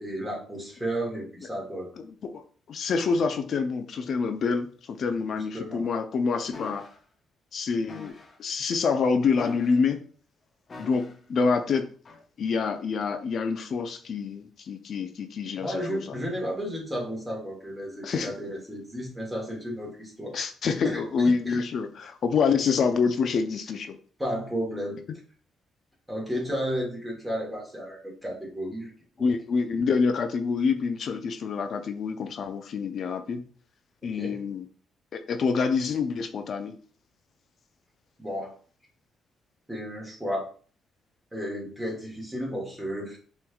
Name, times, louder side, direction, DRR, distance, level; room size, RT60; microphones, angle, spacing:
voice 1, 0.0-1.9 5.1-5.9 15.6-20.4 20.8-21.6 24.2-25.0 26.1-28.9 29.2-29.3 34.1-34.4 38.2-38.5 39.7-40.5 41.3-43.2, equal, 10° right, -2 dB, 1.9 m, -33 dB
voice 2, 2.7-6.9 7.5-8.1 8.4-10.0 10.8-11.9 12.4-16.2 18.0-18.3 20.3-24.0 29.2-33.4 34.0-34.7 35.1-36.7, left 5 dB, 60° left, 7 dB, 0.5 m, -27 dB
sound 1, 6.5-7.0 7.9-8.4 9.4-10.0 10.7-11.3 12.1-12.2, left 4 dB, 40° left, 0.8 m, -43 dB
6.0 x 3.2 x 2.3 m, 0.42 s
cardioid pair, 90°, 0 cm